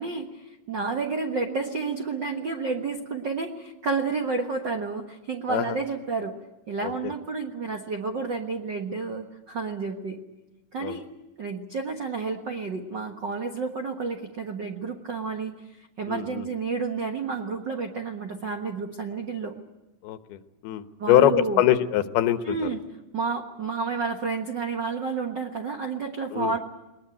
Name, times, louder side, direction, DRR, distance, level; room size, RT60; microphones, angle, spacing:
voice 1, 0.0-6.4 6.7-10.2 10.7-11.1 11.4-19.6 21.0-21.7 22.4-22.8 23.1-26.6, right 4 dB, 75° right, 4 dB, 1.0 m, -30 dB
sound 1, 1.5-4.0, right 10 dB, 50° right, 2.3 m, -46 dB
voice 2, 16.1-16.5 20.0-22.6 26.3-26.5, left 12 dB, 85° left, 10 dB, 3.0 m, -23 dB
21.0 x 20.5 x 10.0 m, 1.0 s
omnidirectional pair, 4.4 m